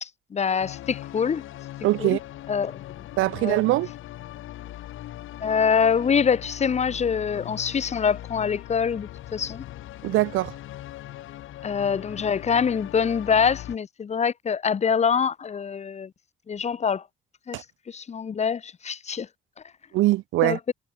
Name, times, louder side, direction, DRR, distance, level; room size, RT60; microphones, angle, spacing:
voice 1, 0.0-1.4 2.0-2.2 2.5-2.8 3.4-3.6 5.4-9.6 11.6-16.1 16.5-17.0 17.5-19.3 20.4-20.7, left 6 dB, 35° left, 0.7 m, -25 dB
sound 1, 0.6-13.8, left 14 dB, 85° left, 3.2 m, -40 dB
voice 2, 1.8-2.2 3.2-3.9 10.0-10.5 17.5-17.6 19.9-20.6, right 18 dB, 90° right, 0.6 m, -22 dB
cardioid pair, 90°, 20 cm